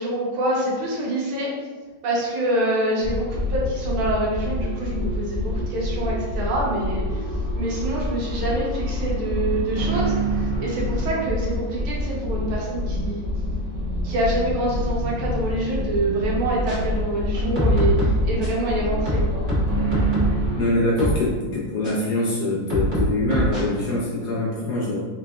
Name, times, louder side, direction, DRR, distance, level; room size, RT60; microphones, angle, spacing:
voice 1, 0.0-1.5 2.0-7.0 7.6-10.1 10.6-13.2 14.0-19.4, right 1 dB, 85° right, -4 dB, 1.8 m, -26 dB
sound 1, 3.0-20.7, equal, 60° right, 1.1 m, -27 dB
sound 2, 16.5-16.8 17.3-18.6 19.1-20.4 21.0-21.2 21.8-21.9 22.7-23.6, equal, 35° right, 0.9 m, -23 dB
voice 2, 20.6-25.0, left 2 dB, 65° left, -5 dB, 1.1 m, -24 dB
3.8 x 3.6 x 2.3 m, 1.3 s
omnidirectional pair, 2.2 m